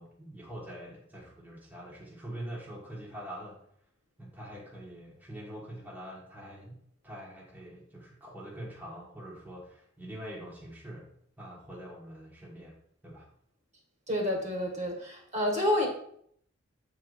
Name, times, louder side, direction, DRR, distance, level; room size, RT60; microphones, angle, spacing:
voice 1, 0.0-3.6 4.2-6.8 7.0-11.1 11.4-12.8 13.0-13.3, right 1 dB, 10° right, -5 dB, 1.4 m, -44 dB
voice 2, 14.1-15.9, left 1 dB, 35° right, 1 dB, 1.7 m, -29 dB
8.3 x 3.9 x 4.8 m, 0.65 s
head